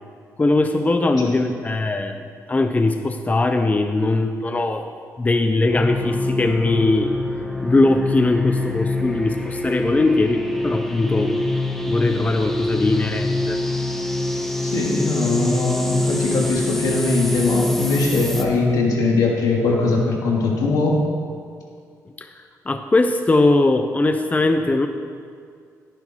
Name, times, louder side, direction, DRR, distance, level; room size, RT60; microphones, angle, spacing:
voice 1, 0.4-2.2 2.5-4.9 5.2-7.1 7.6-11.3 11.9-13.6 22.2-24.9, left 2 dB, 25° left, 7 dB, 0.8 m, -20 dB
sound 1, 5.7-18.4, left 2 dB, 5° left, 1.5 m, -25 dB
voice 2, 14.6-21.0, left 3 dB, 80° left, -1 dB, 2.8 m, -21 dB
17.5 x 10.0 x 4.7 m, 2.2 s
cardioid pair, 80°, 6 cm